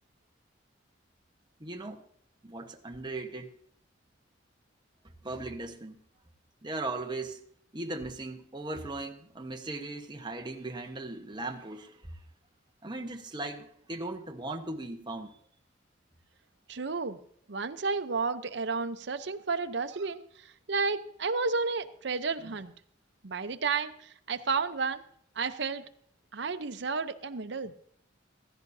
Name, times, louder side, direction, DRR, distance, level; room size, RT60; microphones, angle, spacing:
voice 1, 1.6-2.0 2.4-3.5 5.2-6.0 6.6-7.5 7.7-12.2 12.8-15.4 22.4-22.5, right 2 dB, 25° right, 4 dB, 1.2 m, -38 dB
voice 2, 16.7-17.2 17.5-20.2 20.7-22.7 23.2-25.0 25.4-25.8 26.3-27.7, right 4 dB, 65° right, 8 dB, 0.8 m, -31 dB
15.5 x 14.5 x 2.7 m, 0.64 s
head